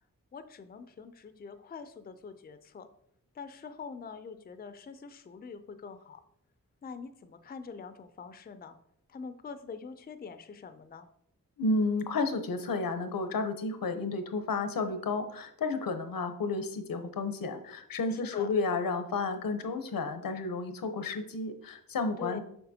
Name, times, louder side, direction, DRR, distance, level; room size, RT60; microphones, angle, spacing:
voice 1, 0.3-2.9 3.3-6.2 6.8-8.8 9.1-11.1 18.1-18.5 22.2-22.4, left 5 dB, 30° left, 10 dB, 0.4 m, -44 dB
voice 2, 11.6-22.4, left 3 dB, 85° left, 8 dB, 0.8 m, -32 dB
6.8 x 5.7 x 2.7 m, 0.72 s
wide cardioid pair, 100°, 34 cm